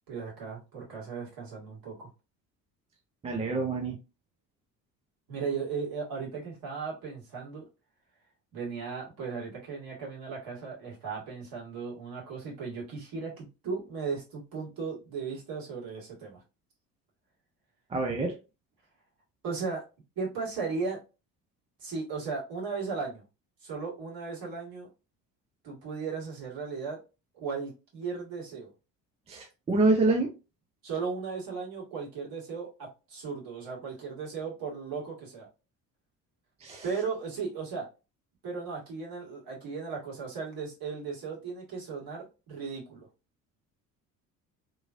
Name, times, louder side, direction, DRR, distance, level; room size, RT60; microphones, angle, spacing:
voice 1, 0.1-2.1 5.3-7.6 8.5-16.4 19.4-19.8 20.2-21.0 21.8-23.2 23.6-24.9 25.6-27.0 27.4-28.7 30.8-35.5 36.8-37.9 38.4-43.1, right 5 dB, 45° right, -3 dB, 1.6 m, -36 dB
voice 2, 3.2-4.0 17.9-18.3 29.3-30.3 36.6-36.9, right 2 dB, 15° right, 2 dB, 0.4 m, -26 dB
3.0 x 2.4 x 2.4 m, 0.30 s
figure-of-eight pair, 55°, 49 cm